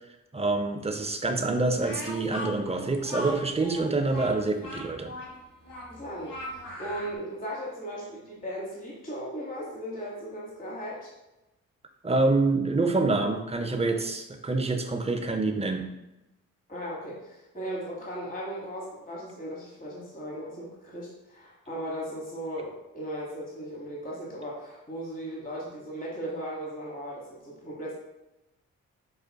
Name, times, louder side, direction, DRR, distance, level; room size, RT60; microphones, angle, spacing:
voice 1, 0.3-5.1 12.0-15.9, right 3 dB, 20° right, 5 dB, 0.6 m, -26 dB
Speech, 1.8-7.1, left 1 dB, 75° left, 1.3 m, -39 dB
voice 2, 5.9-11.1 16.7-27.9, equal, 25° left, -4 dB, 1.2 m, -37 dB
5.5 x 2.4 x 2.2 m, 0.97 s
supercardioid pair, 45°, 33 cm